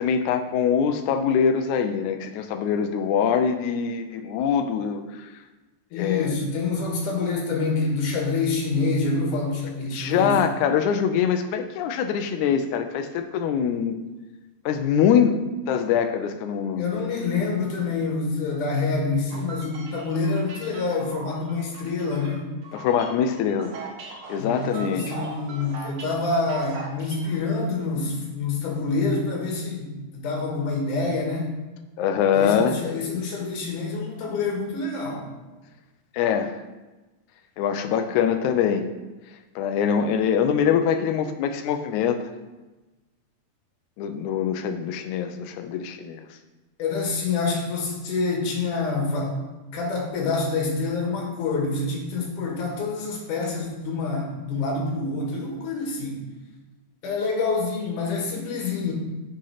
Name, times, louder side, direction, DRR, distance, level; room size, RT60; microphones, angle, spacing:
voice 1, 0.0-5.3 5.9-6.3 9.9-14.0 14.6-15.3 15.7-16.9 22.7-23.7 24.3-25.1 32.0-32.8 36.1-36.5 37.6-38.8 39.5-42.2 44.0-46.3, left 7 dB, 80° left, 7 dB, 1.7 m, -23 dB
voice 2, 5.9-10.4 16.8-22.5 24.4-31.5 32.3-35.3 46.8-49.4 49.7-56.2 57.0-58.9, left 3 dB, 65° left, -1 dB, 3.0 m, -27 dB
sound 1, 19.3-27.4, right 4 dB, 80° right, 1.2 m, -40 dB
6.5 x 6.5 x 5.7 m, 1.1 s
omnidirectional pair, 4.1 m